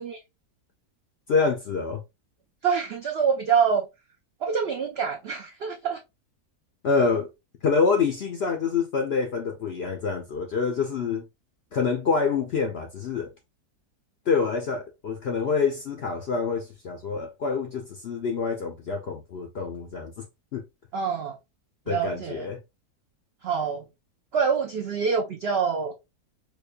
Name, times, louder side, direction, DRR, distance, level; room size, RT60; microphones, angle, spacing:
voice 1, 1.3-2.0 6.8-7.3 7.6-11.2 11.7-13.3 14.3-20.1 20.5-20.6 21.9-22.6, left 5 dB, 65° left, 0.6 m, -26 dB
voice 2, 2.6-3.9 4.4-6.0 20.9-21.4 21.9-22.4 23.4-23.8 24.3-25.9, right 6 dB, 80° right, 0.5 m, -25 dB
5.0 x 2.2 x 2.3 m
omnidirectional pair, 1.7 m